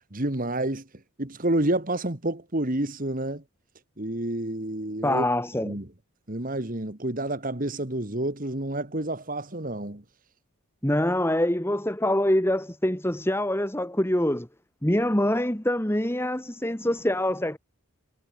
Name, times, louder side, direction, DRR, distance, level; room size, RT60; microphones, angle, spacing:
voice 1, 0.1-0.9 1.2-3.4 4.0-5.2 5.6-5.9 6.3-10.0, right 1 dB, 40° right, 2.0 m, -29 dB
voice 2, 5.0-5.8 10.8-14.5 14.8-17.6, left 1 dB, 10° left, 1.6 m, -25 dB
head